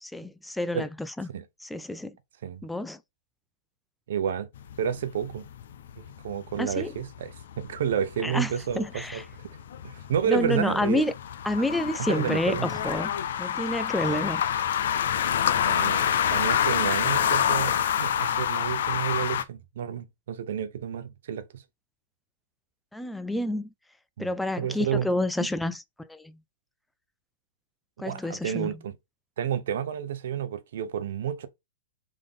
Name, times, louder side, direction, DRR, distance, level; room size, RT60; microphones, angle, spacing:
voice 1, 0.0-1.3 1.6-2.2 2.6-3.0 6.6-6.9 8.2-9.2 10.3-11.1 11.4-13.1 13.4-14.4 22.9-23.7 24.2-26.4 28.0-28.8, left 1 dB, 5° left, 0.3 m, -29 dB
voice 2, 4.1-4.5 4.8-5.5 6.2-9.5 9.8-11.0 12.1-12.7 14.0-14.2 15.6-21.6 24.2-24.3 24.6-25.1 28.0-28.9 29.4-31.5, right 8 dB, 70° right, 0.7 m, -30 dB
sound 1, 4.6-19.4, left 9 dB, 70° left, 0.5 m, -28 dB
3.7 x 3.5 x 3.7 m
hypercardioid pair, 135°, 0 cm